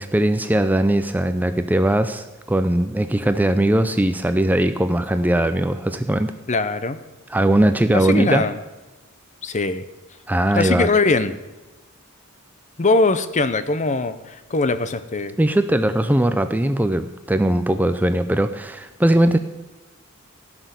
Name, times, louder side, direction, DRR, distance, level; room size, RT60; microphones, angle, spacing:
voice 1, 0.0-6.3 7.3-8.5 10.3-10.9 15.4-19.4, right 1 dB, 10° right, 10 dB, 0.4 m, -20 dB
voice 2, 6.5-7.0 7.9-8.6 9.4-9.8 10.6-11.3 12.8-15.4, left 3 dB, 35° left, 13 dB, 0.7 m, -21 dB
16.0 x 6.1 x 8.1 m, 1.1 s
head